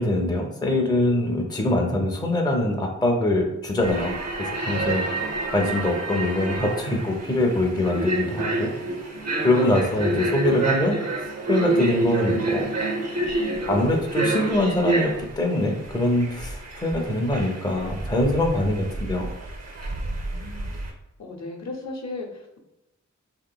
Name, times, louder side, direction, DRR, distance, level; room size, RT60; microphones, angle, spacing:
voice 1, 0.0-4.1 4.4-5.0 5.5-8.7 9.4-11.0 11.5-12.7 13.7-19.3, left 1 dB, 15° left, 1 dB, 0.5 m, -23 dB
sound 1, 3.8-20.9, right 2 dB, 55° right, 0.6 m, -28 dB
voice 2, 4.7-5.2 8.2-8.4 9.3-9.5 10.0-10.5 20.0-22.6, left 2 dB, 60° left, 0 dB, 0.7 m, -38 dB
3.2 x 2.9 x 2.2 m, 0.93 s
wide cardioid pair, 55°, 31 cm